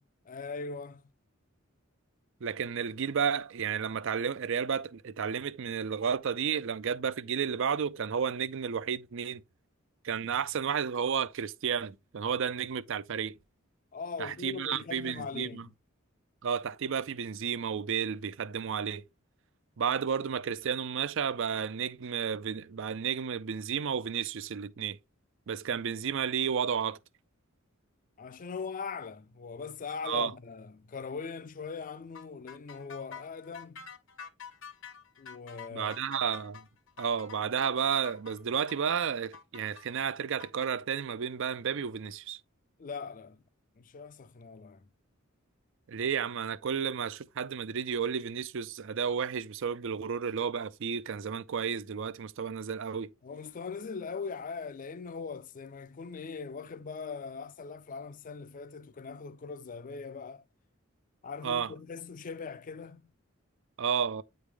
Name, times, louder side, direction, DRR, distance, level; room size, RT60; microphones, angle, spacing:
voice 1, 0.3-1.0 13.9-15.7 28.2-33.9 35.2-36.2 42.8-43.4 43.8-44.9 53.2-60.4 61.2-63.1, left 5 dB, 40° left, 0.4 m, -41 dB
voice 2, 2.4-9.4 10.0-13.4 14.2-15.7 16.4-19.0 19.8-25.0 25.5-27.0 30.1-30.3 35.7-36.7 37.0-42.4 45.9-53.1 61.4-61.7 63.8-64.2, right 7 dB, 65° right, 0.5 m, -32 dB
sound 1, 32.1-40.7, left 6 dB, 65° left, 1.0 m, -48 dB
9.0 x 3.3 x 3.4 m
head